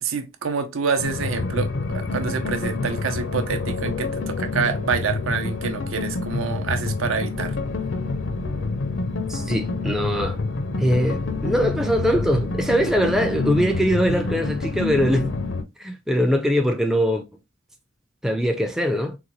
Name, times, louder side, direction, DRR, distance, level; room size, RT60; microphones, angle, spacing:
voice 1, 0.0-7.6, right 5 dB, 80° right, 0.6 m, -27 dB
sound 1, 1.0-15.6, left 3 dB, 70° left, 0.5 m, -27 dB
voice 2, 9.3-10.4 10.8-15.4 15.8-17.2 18.2-19.2, equal, ahead, 0.3 m, -22 dB
3.9 x 2.2 x 3.0 m
head